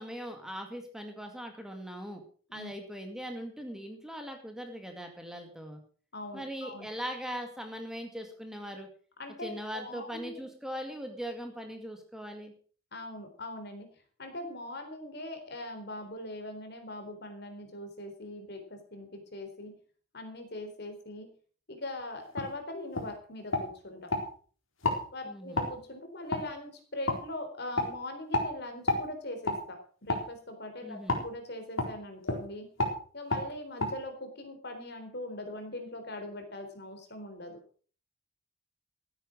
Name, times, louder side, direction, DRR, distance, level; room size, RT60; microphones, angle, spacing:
voice 1, 0.0-2.2 2.5-5.8 6.3-8.9 9.4-12.5 25.3-25.7 30.8-31.3, equal, 5° right, 4 dB, 2.1 m, -40 dB
voice 2, 6.1-6.9 9.2-10.4 12.9-13.9 14.2-19.7 20.1-21.3 21.7-24.1 25.1-32.7 33.1-37.6, left 1 dB, 55° left, 6 dB, 3.8 m, -41 dB
sound 1, 22.4-22.5 22.9-23.1 23.5-24.2 24.8-25.0 25.6-25.7 26.3-26.4 27.1-27.2 27.7-27.9 28.3-28.5 28.9-29.0 29.4-29.6 30.1-30.3 31.1-31.2 31.8-31.9 32.2-32.4 32.8-33.0 33.3-33.4 33.8-33.9, left 2 dB, 75° left, 4.0 m, -29 dB
15.5 x 9.2 x 6.3 m, 0.42 s
head